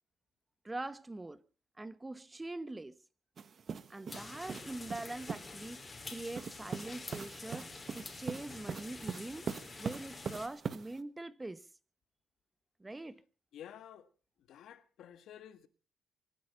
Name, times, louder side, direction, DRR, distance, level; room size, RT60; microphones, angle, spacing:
voice 1, 0.6-1.4 1.8-3.0 3.9-9.5 9.8-11.7 12.8-13.2, right 2 dB, 15° right, 1.1 m, -43 dB
sound 1, 3.4-5.6 6.3-11.0, right 6 dB, 50° right, 1.4 m, -42 dB
sound 2, 4.1-10.5, left 3 dB, 25° left, 3.9 m, -48 dB
voice 2, 13.5-14.1 14.5-15.7, left 10 dB, 75° left, 1.5 m, -51 dB
24.5 x 10.5 x 5.5 m
cardioid pair, 90°, 0 cm